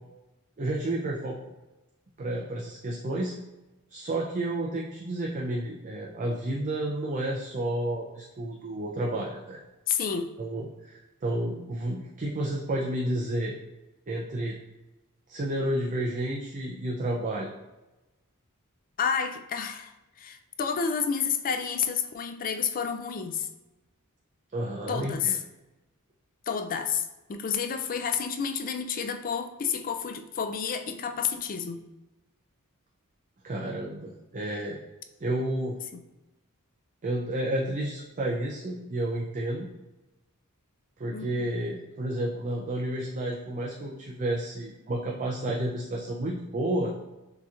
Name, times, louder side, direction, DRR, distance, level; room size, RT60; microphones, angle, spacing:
voice 1, 0.6-1.4 2.2-3.3 3.9-9.6 10.4-13.6 14.1-14.6 15.3-17.5 24.5-25.3 33.4-34.8 35.2-35.8 37.0-39.7 41.0-46.9, right 1 dB, 35° right, -2 dB, 0.5 m, -31 dB
voice 2, 9.9-10.3 19.0-19.9 20.2-23.5 24.9-25.4 26.5-31.8 35.9-36.0 41.1-41.5, left 7 dB, 40° left, 7 dB, 0.4 m, -30 dB
6.7 x 2.9 x 2.4 m, 1.0 s
head